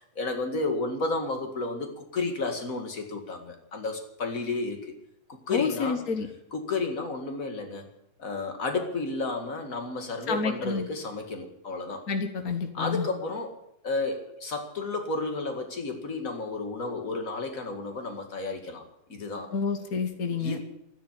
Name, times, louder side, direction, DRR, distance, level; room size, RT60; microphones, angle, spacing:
voice 1, 0.2-4.9 5.3-6.0 6.5-7.9 8.2-12.0 12.7-13.5 13.8-18.8 19.1-19.5 20.4-20.6, left 3 dB, 30° left, 5 dB, 1.9 m, -32 dB
voice 2, 5.5-6.3 10.3-10.9 12.1-13.1 19.5-20.6, left 5 dB, 75° left, 7 dB, 0.8 m, -29 dB
13.5 x 9.9 x 9.9 m, 0.79 s
omnidirectional pair, 3.6 m